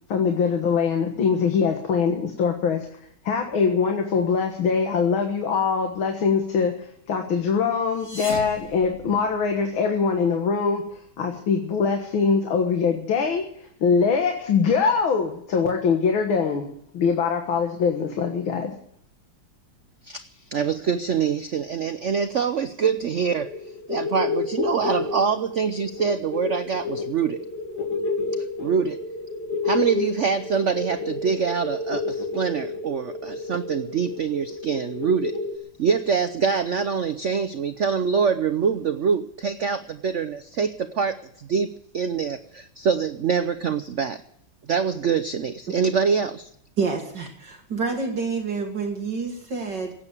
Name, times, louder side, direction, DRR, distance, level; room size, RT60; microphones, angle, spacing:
voice 1, 0.1-2.9 3.2-6.7 7.1-10.8 11.2-13.5 13.8-16.7 16.9-18.7, left 5 dB, 80° left, 3 dB, 2.3 m, -22 dB
sound 1, 7.8-9.7, left 2 dB, 35° left, 2.8 m, -38 dB
voice 2, 20.0-23.5 23.9-27.4 28.6-29.0 29.6-35.3 35.8-41.7 41.9-44.2 44.7-46.5, right 6 dB, 80° right, 10 dB, 0.6 m, -25 dB
sound 2, 23.1-35.6, left 3 dB, 55° left, 2.1 m, -30 dB
voice 3, 46.8-49.9, right 4 dB, 60° right, 2 dB, 2.5 m, -28 dB
16.5 x 8.7 x 9.7 m, 0.71 s
omnidirectional pair, 2.2 m